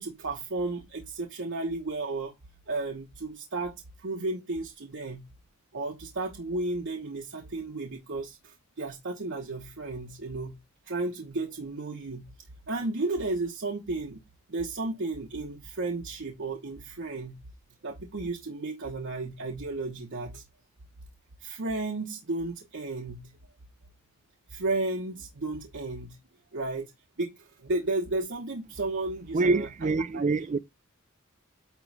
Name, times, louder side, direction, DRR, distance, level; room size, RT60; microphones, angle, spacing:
voice 1, 0.0-2.3 2.7-5.3 5.7-10.6 10.9-12.3 12.7-14.2 14.5-17.4 17.8-20.4 21.4-23.3 24.5-26.2 26.5-26.9 27.2-29.7 30.1-30.3, right 2 dB, 60° right, 1.0 m, -33 dB
voice 2, 29.3-30.6, right 3 dB, 35° right, 0.4 m, -25 dB
9.1 x 3.1 x 4.6 m
head